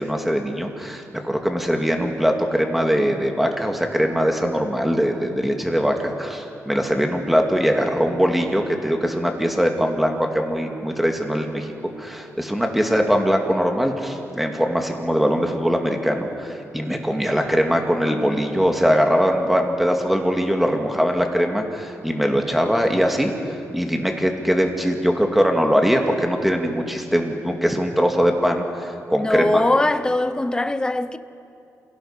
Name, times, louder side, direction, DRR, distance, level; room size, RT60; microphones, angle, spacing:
voice 1, 0.0-11.7 12.0-29.6, equal, ahead, 2.2 m, -21 dB
voice 2, 29.2-31.2, left 2 dB, 15° left, 0.7 m, -21 dB
28.5 x 17.0 x 5.8 m
cardioid pair, 110°, 6 cm